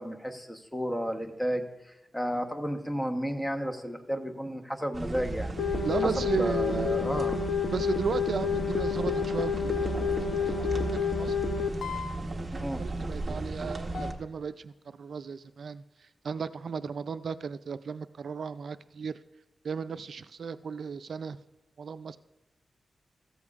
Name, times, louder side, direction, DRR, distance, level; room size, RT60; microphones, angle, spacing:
voice 1, 0.0-5.6 6.2-7.4 12.5-12.8, equal, 10° left, 5 dB, 1.0 m, -32 dB
sound 1, 4.9-14.1, right 2 dB, 30° right, 1.0 m, -35 dB
sound 2, 5.6-12.2 13.9-14.1, left 6 dB, 85° left, 0.6 m, -30 dB
voice 2, 5.8-6.9 7.7-11.4 11.8-12.0 12.5-19.2 19.6-21.4 21.8-22.2, right 5 dB, 70° right, 12 dB, 0.3 m, -35 dB
14.5 x 13.0 x 2.4 m, 1.0 s
wide cardioid pair, 115°, 0 cm